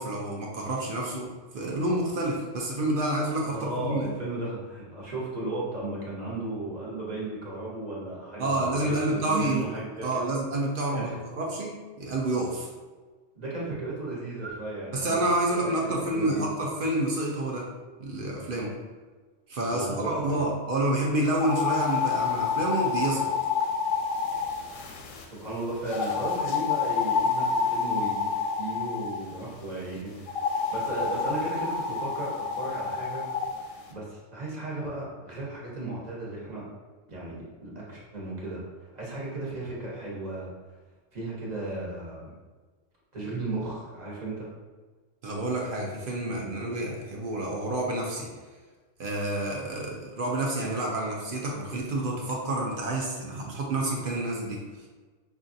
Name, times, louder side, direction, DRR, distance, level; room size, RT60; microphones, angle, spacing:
voice 1, 0.0-4.1 8.4-9.7 10.0-12.7 14.9-17.7 18.0-18.8 19.5-23.3 45.2-48.3 49.0-54.6, right 1 dB, 55° right, -1 dB, 0.7 m, -29 dB
voice 2, 3.5-10.3 10.9-11.2 13.3-15.2 15.5-15.7 16.1-16.5 19.7-20.4 25.3-28.3 28.6-33.3 33.6-36.7 37.1-40.5 41.1-42.3 43.1-44.5, right 2 dB, 35° right, -5 dB, 1.0 m, -35 dB
sound 1, 21.3-25.2 25.9-29.2 30.3-33.5, left 5 dB, 90° left, 0.9 m, -28 dB
5.2 x 2.4 x 2.6 m, 1.4 s
omnidirectional pair, 1.3 m